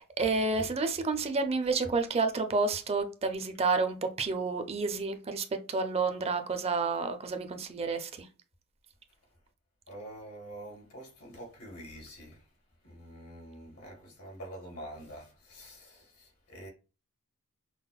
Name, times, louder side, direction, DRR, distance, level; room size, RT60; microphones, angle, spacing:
voice 1, 0.0-8.3, right 4 dB, 25° right, 0.5 m, -30 dB
voice 2, 9.9-12.5 12.8-16.7, right 1 dB, 85° left, 2.1 m, -46 dB
5.6 x 2.1 x 2.3 m
head